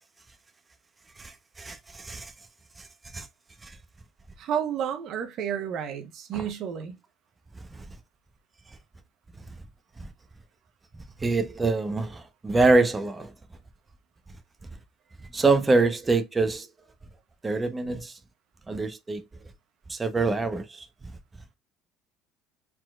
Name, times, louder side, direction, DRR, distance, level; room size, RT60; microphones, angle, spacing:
voice 1, 1.2-2.3 3.1-3.3 3.6-3.7 6.3-6.5 7.7-7.8 11.2-13.3 15.3-16.7 17.4-18.1 18.7-19.2 19.9-20.8, right 3 dB, 20° right, 1.0 m, -25 dB
voice 2, 4.4-6.9, right 8 dB, 60° right, 0.9 m, -31 dB
4.4 x 4.1 x 2.4 m
hypercardioid pair, 75°, 0 cm